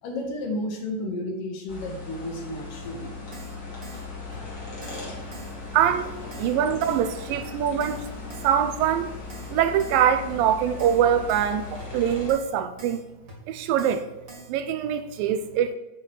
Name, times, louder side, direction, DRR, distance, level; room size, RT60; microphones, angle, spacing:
voice 1, 0.0-3.2 4.3-4.4, left 1 dB, 65° left, 2 dB, 3.2 m, -32 dB
sound 1, 1.7-12.3, left 4 dB, 30° left, 2.8 m, -38 dB
Keyboard (musical), 2.8-2.9 3.3-3.6 3.8-4.1 4.3-4.4 4.8-5.0 5.3-5.5 5.8-5.9 6.3-6.5 6.8-7.0 7.3-7.4 7.8-8.0 8.3-8.5 8.8-8.9 9.3-9.5 9.8-10.0 10.3-10.4 10.8-11.0 11.3-11.5 11.8-11.9 12.3-12.5 12.8-13.0 13.3-13.4 13.8-14.0 14.3-14.5, right 2 dB, 25° right, 2.5 m, -44 dB
voice 2, 5.7-8.1 8.4-9.1 9.5-13.0 13.5-14.1 14.5-15.8, right 9 dB, 80° right, 10 dB, 2.2 m, -23 dB
9.6 x 6.9 x 4.5 m, 1.1 s
omnidirectional pair, 4.3 m